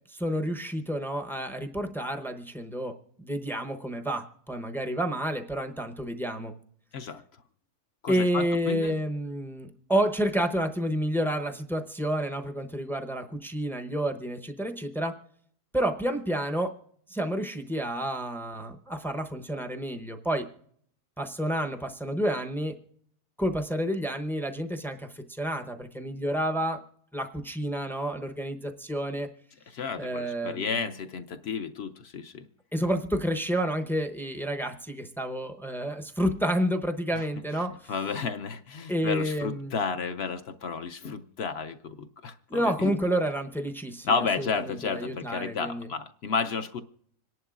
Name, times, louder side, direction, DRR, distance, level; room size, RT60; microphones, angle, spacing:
voice 1, 0.1-6.5 8.1-15.2 15.7-16.7 17.1-20.5 21.2-22.7 23.4-26.8 27.1-29.3 30.0-30.9 32.7-37.9 38.9-39.7 42.5-45.9, equal, 5° left, 5 dB, 0.4 m, -30 dB
voice 2, 8.0-9.0 29.7-32.5 37.1-37.3 37.9-43.0 44.0-46.8, left 5 dB, 60° left, 9 dB, 0.6 m, -32 dB
26.0 x 11.0 x 2.4 m, 0.63 s
omnidirectional pair, 1.6 m